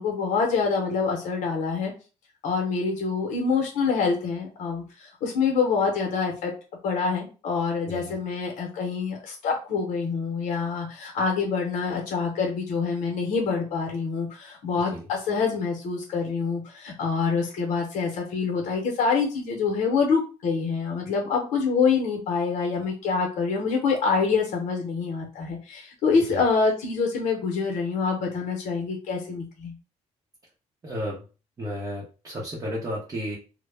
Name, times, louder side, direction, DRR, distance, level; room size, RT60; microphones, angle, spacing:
voice 1, 0.0-1.9 2.4-6.5 6.8-29.7, left 5 dB, 85° left, 1 dB, 0.7 m, -26 dB
voice 2, 30.8-31.2 31.6-33.4, equal, 30° right, -3 dB, 0.7 m, -33 dB
2.1 x 2.0 x 3.2 m, 0.34 s
cardioid pair, 120°, 12 cm